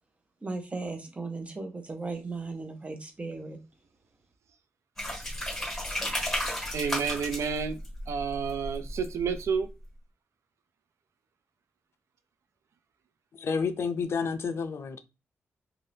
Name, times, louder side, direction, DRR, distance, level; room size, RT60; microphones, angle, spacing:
voice 1, 0.4-3.6, right 3 dB, 25° right, 0.7 m, -36 dB
sound 1, 5.0-9.6, left 1 dB, 10° left, 1.4 m, -34 dB
voice 2, 6.7-7.8 8.1-9.7, right 6 dB, 80° right, 0.4 m, -30 dB
voice 3, 13.3-15.0, left 5 dB, 65° left, 0.4 m, -30 dB
2.6 x 2.4 x 3.3 m
cardioid pair, 85°, 5 cm